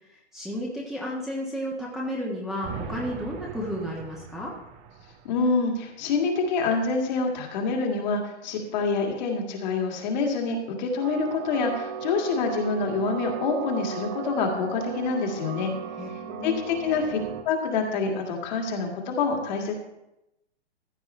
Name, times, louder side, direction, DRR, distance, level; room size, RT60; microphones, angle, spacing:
voice 1, 0.3-4.5 16.0-16.6, equal, ahead, -5 dB, 1.4 m, -32 dB
sound 1, 2.6-5.5 11.0-17.4, right 7 dB, 20° right, 0.6 m, -37 dB
voice 2, 5.2-15.7 16.4-17.2 17.4-19.7, left 4 dB, 40° left, 1 dB, 2.1 m, -26 dB
15.0 x 8.7 x 3.3 m, 0.88 s
figure-of-eight pair, 125°, 34 cm